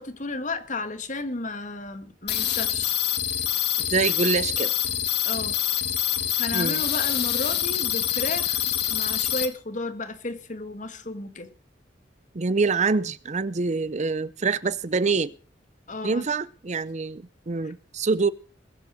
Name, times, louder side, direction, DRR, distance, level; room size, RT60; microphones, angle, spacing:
voice 1, 0.0-2.9 5.2-5.6 6.4-11.5 15.9-16.3 17.6-17.7, left 2 dB, 45° left, 2.0 m, -33 dB
sound 1, 2.3-9.5, left 11 dB, 65° left, 1.8 m, -26 dB
voice 2, 3.9-4.8 6.5-6.8 12.3-15.3 16.0-18.3, right 4 dB, 40° right, 0.6 m, -25 dB
21.0 x 8.0 x 6.3 m
head